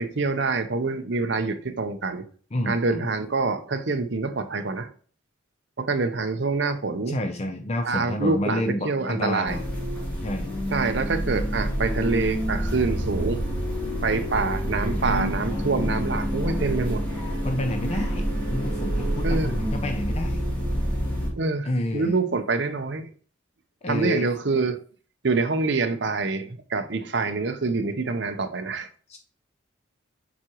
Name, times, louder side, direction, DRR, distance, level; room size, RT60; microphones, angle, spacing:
voice 1, 0.0-2.2 2.7-4.9 5.8-7.2 7.8-9.6 10.7-13.4 14.0-17.0 19.2-19.6 21.3-23.1 23.9-24.8 25.2-28.9, right 3 dB, 55° right, 0.7 m, -26 dB
voice 2, 2.5-3.1 7.1-9.6 10.2-10.5 17.4-20.4 21.6-22.2 23.8-24.3 29.1-29.2, left 1 dB, 30° left, 0.5 m, -29 dB
sound 1, 9.5-21.3, equal, 10° left, 2.8 m, -27 dB
7.3 x 4.9 x 3.0 m
head